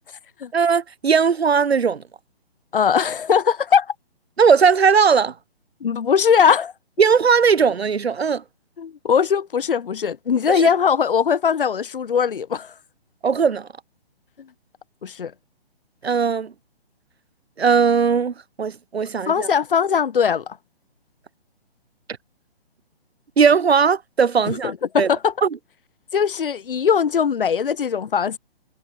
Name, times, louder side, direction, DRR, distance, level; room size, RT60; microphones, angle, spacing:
voice 1, 0.5-2.0 4.4-5.3 7.0-8.4 10.5-10.7 13.2-13.7 16.0-16.5 17.6-19.5 23.4-25.1 25.4-25.5, right 6 dB, 80° right, 0.9 m, -18 dB
voice 2, 2.7-3.9 5.8-6.7 8.8-12.7 15.0-15.3 19.3-20.6 24.5-25.3 26.1-28.4, left 7 dB, 60° left, 1.6 m, -20 dB
figure-of-eight pair, 140°, 31 cm